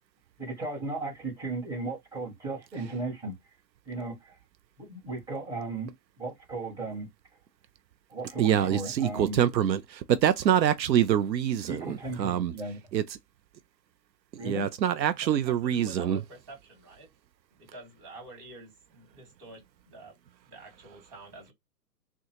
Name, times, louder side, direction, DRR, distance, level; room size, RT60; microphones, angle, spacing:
voice 1, 0.4-3.3 3.8-4.3 4.8-5.9 6.2-7.1 8.1-9.4 11.7-12.8 14.4-14.7, right 3 dB, 5° right, 1.7 m, -35 dB
voice 2, 8.4-12.5 12.9-13.0 14.3-16.2, right 10 dB, 85° right, 0.6 m, -25 dB
voice 3, 15.2-17.1 17.6-20.2 20.4-21.5, right 2 dB, 25° right, 2.5 m, -48 dB
3.6 x 2.3 x 2.9 m
hypercardioid pair, 135°, 50 cm